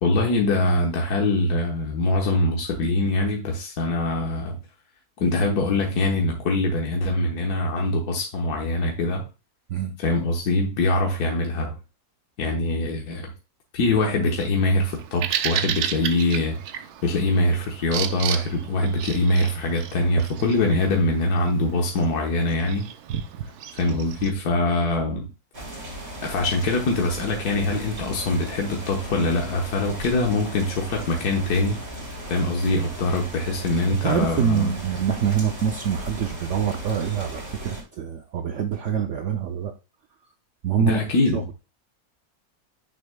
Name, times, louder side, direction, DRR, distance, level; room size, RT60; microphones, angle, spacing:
voice 1, 0.0-4.6 5.2-9.2 10.0-11.8 12.4-13.3 13.7-16.6 17.0-22.9 23.7-25.3 26.2-31.8 32.3-34.7 40.8-41.4, left 2 dB, 80° left, 1 dB, 1.6 m, -23 dB
Bird vocalization bird call bird song, 14.9-24.3, right 9 dB, 85° right, 1.2 m, -33 dB
sound 1, 25.5-37.8, right 1 dB, 35° right, 2.7 m, -37 dB
voice 2, 34.0-39.7 40.6-41.0 41.3-41.4, right 7 dB, 65° right, 6 dB, 0.8 m, -25 dB
9.8 x 6.3 x 2.2 m, 0.30 s
omnidirectional pair, 1.6 m